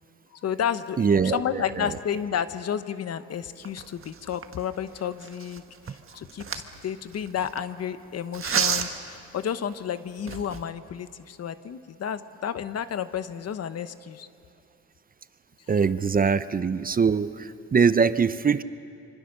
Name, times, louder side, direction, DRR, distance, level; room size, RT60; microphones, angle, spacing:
voice 1, 0.4-1.1 1.3-6.5 6.8-14.3, left 8 dB, 55° left, 12 dB, 1.0 m, -31 dB
voice 2, 1.0-2.0 15.7-18.6, right 5 dB, 30° right, 14 dB, 0.7 m, -23 dB
sound 1, 3.6-7.6 8.3-9.1 9.7-9.8 10.2-10.7, right 6 dB, 45° right, 1.5 m, -31 dB
25.5 x 25.5 x 6.7 m, 2.5 s
cardioid pair, 90°, 30 cm